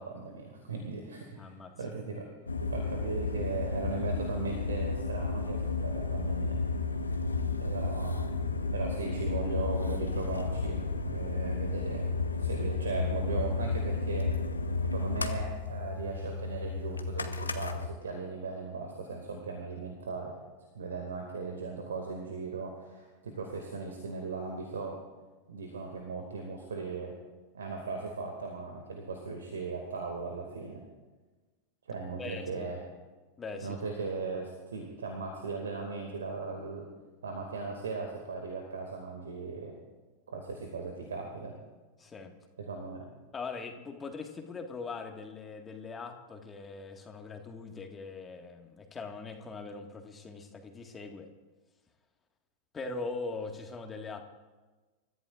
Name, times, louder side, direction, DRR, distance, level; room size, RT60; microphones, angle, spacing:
voice 1, 0.0-2.3 2.6-6.6 7.6-12.0 12.4-14.3 14.9-20.4 20.7-25.0 25.5-27.1 27.5-30.8 31.9-32.8 33.6-36.8 37.2-39.7 40.3-41.5 42.7-43.1, right 4 dB, 70° right, 2 dB, 2.2 m, -38 dB
voice 2, 1.3-1.7 32.2-32.7 33.4-33.7 42.0-42.3 43.3-51.3 52.7-54.3, left 4 dB, 20° left, 4 dB, 1.8 m, -41 dB
sound 1, 2.5-17.9, left 3 dB, 80° left, 1.1 m, -32 dB
29.0 x 14.0 x 2.5 m, 1.3 s
figure-of-eight pair, 90°, 0 cm